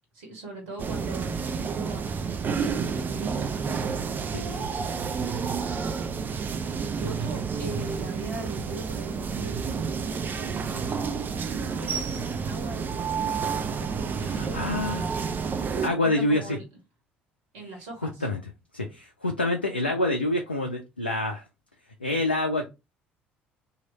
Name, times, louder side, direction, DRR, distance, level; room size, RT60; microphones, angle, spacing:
voice 1, 0.1-3.5 7.0-9.7 10.3-14.6 15.7-16.6 17.5-18.3, right 2 dB, 70° right, 1 dB, 1.5 m, -41 dB
sound 1, 0.8-15.9, right 5 dB, 35° right, 0.5 m, -30 dB
voice 2, 4.3-4.7 14.2-15.1 15.4-15.5 15.8-16.6 18.2-18.4 18.7-21.4 22.0-22.7, left 2 dB, 90° left, 3 dB, 0.4 m, -27 dB
3.1 x 2.7 x 3.9 m, 0.26 s
figure-of-eight pair, 55°, 5 cm